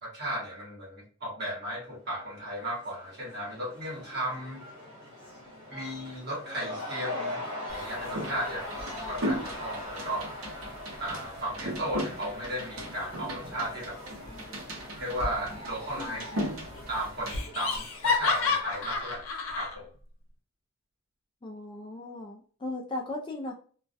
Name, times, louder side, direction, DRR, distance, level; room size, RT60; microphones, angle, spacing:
voice 1, 0.0-4.6 5.7-7.4 7.7-10.3 11.0-14.0 15.0-16.3 16.9-19.3 19.5-19.9, right 1 dB, 50° right, -3 dB, 1.0 m, -35 dB
Cheering / Crowd, 2.2-19.1, left 1 dB, 25° right, 1.0 m, -42 dB
sound 1, 7.7-17.4, equal, 80° right, 0.7 m, -37 dB
Laughter, 16.0-16.5 16.8-16.9 17.3-19.7, left 4 dB, 75° left, 0.6 m, -30 dB
voice 2, 21.4-23.5, left 2 dB, 25° left, 1 dB, 0.3 m, -37 dB
2.2 x 2.1 x 2.5 m, 0.43 s
head